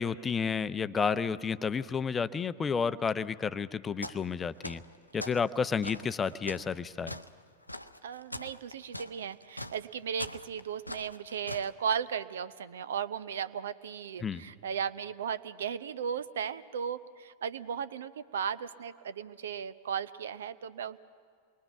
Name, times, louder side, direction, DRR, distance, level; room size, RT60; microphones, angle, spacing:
voice 1, 0.0-4.8 5.1-7.2 14.2-14.4, left 6 dB, 20° left, 14 dB, 0.7 m, -31 dB
sound 1, 4.0-4.3 4.6-5.4 5.8-11.7, left 1 dB, 85° left, 0.6 m, -42 dB
voice 2, 8.0-21.0, right 7 dB, 65° right, 16 dB, 0.7 m, -36 dB
28.5 x 22.0 x 5.9 m, 2.2 s
figure-of-eight pair, 90°, 0 cm